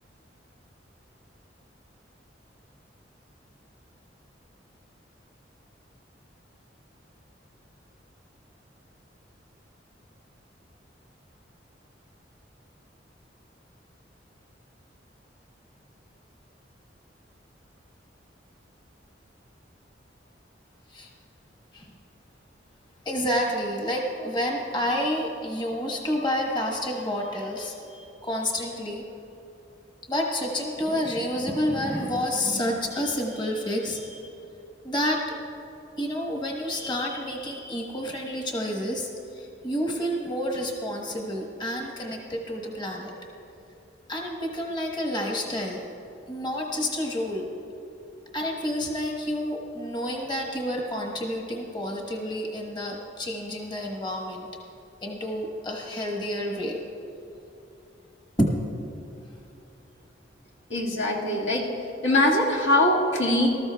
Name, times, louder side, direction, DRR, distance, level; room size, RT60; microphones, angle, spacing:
voice 1, 23.0-29.0 30.1-34.3 34.8-35.3 36.0-43.1 44.1-45.8 46.3-47.5 48.3-54.5 55.0-56.8 58.4-58.5, equal, 25° left, 0 dB, 1.2 m, -29 dB
voice 2, 60.7-61.7 62.0-63.5, left 1 dB, 85° left, -2 dB, 1.9 m, -22 dB
19.0 x 13.5 x 2.3 m, 2.8 s
head